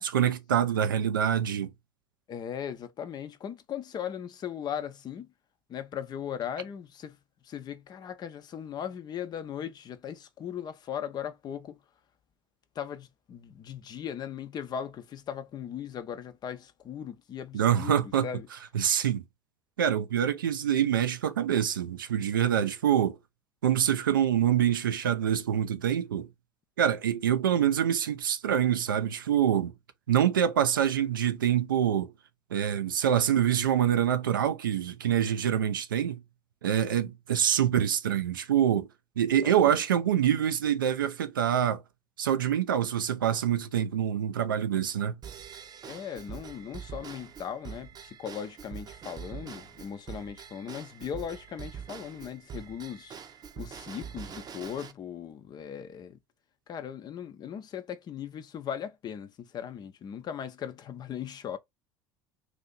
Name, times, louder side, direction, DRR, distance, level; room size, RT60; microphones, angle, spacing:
voice 1, 0.0-1.7 17.5-18.3 18.7-19.2 19.8-23.2 23.6-26.3 26.8-29.7 30.1-32.1 32.5-36.2 36.6-38.9 39.2-41.8 42.2-45.2, right 9 dB, 85° right, 0.5 m, -25 dB
voice 2, 2.3-5.3 5.7-7.2 7.4-11.8 12.7-18.5 39.4-39.8 45.8-53.2 53.6-56.2 56.7-61.6, left 8 dB, 40° left, 0.7 m, -38 dB
Drum kit / Drum / Bell, 45.2-54.9, right 7 dB, 40° right, 0.7 m, -44 dB
2.9 x 2.7 x 3.7 m
hypercardioid pair, 75°, 11 cm